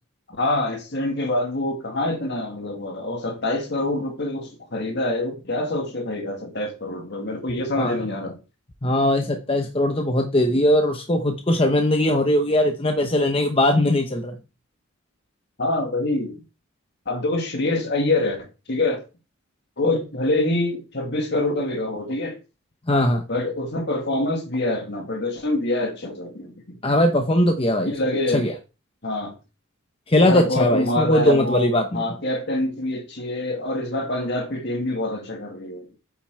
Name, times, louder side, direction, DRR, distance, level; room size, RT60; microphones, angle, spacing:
voice 1, 0.4-8.4 15.6-16.4 17.1-19.0 19.8-22.4 23.3-26.8 27.9-28.5 29.0-29.3 30.2-35.9, left 2 dB, 50° left, 2.0 m, -25 dB
voice 2, 7.5-8.0 8.8-14.4 22.9-23.2 26.8-27.9 28.3-28.5 30.1-32.0, left 1 dB, 25° left, 0.9 m, -20 dB
8.5 x 5.7 x 4.6 m
head